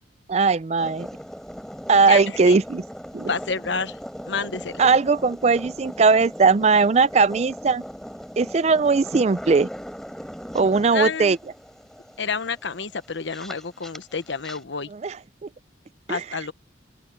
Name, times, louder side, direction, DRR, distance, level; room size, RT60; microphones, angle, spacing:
voice 1, 0.3-1.1 1.9-2.8 3.1-3.3 4.8-7.8 8.4-9.7 10.5-11.4 14.9-15.2 15.4-15.5 16.1-16.2, right 4 dB, 35° right, 0.4 m, -19 dB
sound 1, 0.8-14.6, equal, ahead, 6.8 m, -39 dB
voice 2, 2.1-2.6 3.3-4.0 4.3-4.8 10.9-11.4 12.2-14.9 16.1-16.5, left 5 dB, 75° left, 1.0 m, -29 dB
open air
head